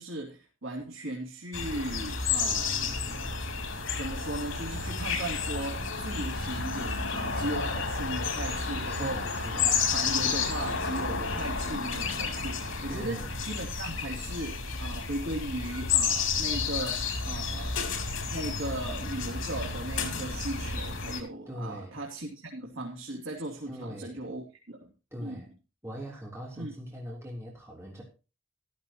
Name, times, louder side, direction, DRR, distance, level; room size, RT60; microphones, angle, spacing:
voice 1, 0.0-3.4 3.9-17.8 18.3-24.9 25.2-25.4 26.6-26.7, right 1 dB, 80° right, -1 dB, 2.9 m, -37 dB
sound 1, 1.5-21.2, left 5 dB, 90° left, 3.5 m, -31 dB
voice 2, 8.8-9.9 12.9-13.3 21.5-22.0 23.7-24.2 25.1-25.5 25.8-28.0, equal, 15° right, -2 dB, 3.6 m, -41 dB
14.0 x 13.5 x 3.0 m, 0.33 s
head